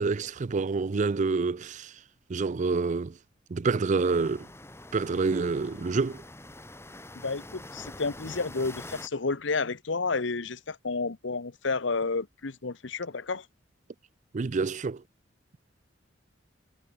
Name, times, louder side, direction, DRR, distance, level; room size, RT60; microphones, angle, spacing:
voice 1, 0.0-1.9 2.3-3.1 3.5-4.5 4.9-6.2 14.3-15.0, right 4 dB, 40° right, 0.4 m, -27 dB
sound 1, 4.0-9.1, left 1 dB, 15° left, 3.4 m, -45 dB
voice 2, 7.2-13.5, left 4 dB, 70° left, 1.0 m, -31 dB
head